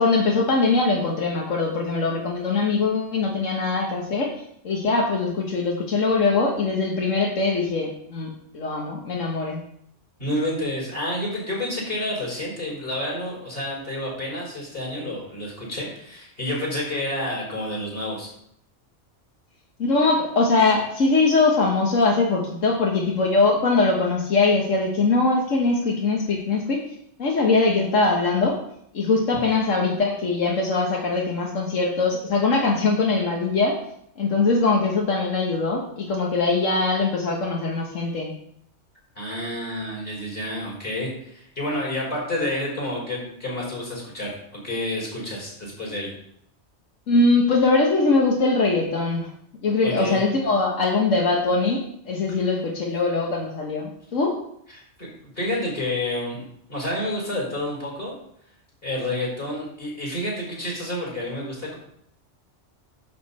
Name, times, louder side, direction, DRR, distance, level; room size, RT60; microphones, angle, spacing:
voice 1, 0.0-4.3 4.6-9.6 19.8-26.8 27.2-28.6 28.9-33.8 34.2-38.3 47.1-49.3 49.6-54.4, left 3 dB, 90° left, -1 dB, 1.7 m, -22 dB
voice 2, 10.2-18.3 39.2-46.1 49.8-50.2 54.7-56.4 56.7-58.1 58.8-61.8, left 1 dB, 50° left, -5 dB, 5.0 m, -29 dB
11.5 x 7.1 x 4.2 m, 0.70 s
omnidirectional pair, 1.3 m